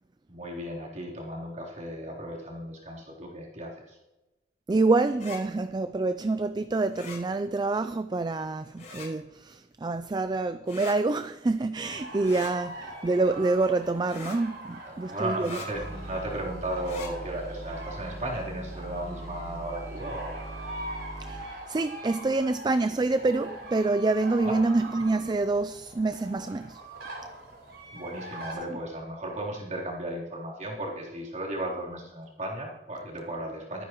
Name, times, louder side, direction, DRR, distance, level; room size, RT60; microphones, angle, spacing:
voice 1, 0.3-4.0 15.0-20.5 24.4-24.6 27.9-33.8, right 1 dB, 40° right, -3 dB, 3.6 m, -35 dB
voice 2, 4.7-15.6 21.2-26.8 28.7-28.8, right 3 dB, 25° right, 11 dB, 0.4 m, -27 dB
sound 1, 5.1-5.4 6.9-7.2 8.8-9.1 10.7-11.0 12.2-12.5 14.1-14.4 15.4-15.7 16.8-17.1, left 4 dB, 45° left, 4.5 m, -41 dB
sound 2, 11.8-28.5, right 1 dB, 90° right, 4.5 m, -43 dB
sound 3, 15.7-21.5, right 2 dB, 60° left, 5.4 m, -41 dB
22.0 x 9.7 x 3.1 m, 1.0 s
head